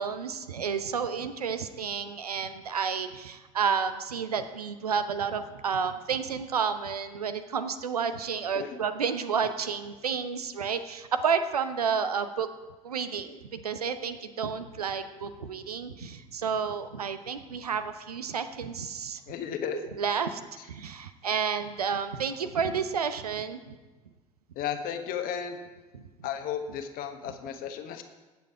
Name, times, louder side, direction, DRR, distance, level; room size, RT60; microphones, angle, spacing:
voice 1, 0.0-12.5 12.8-19.2 19.7-23.8 25.9-26.0, right 6 dB, 80° right, 10 dB, 0.7 m, -31 dB
voice 2, 19.3-19.8 24.5-25.6 26.2-28.0, left 8 dB, 50° left, 7 dB, 1.2 m, -34 dB
16.5 x 7.0 x 4.7 m, 1.2 s
figure-of-eight pair, 65°, 19 cm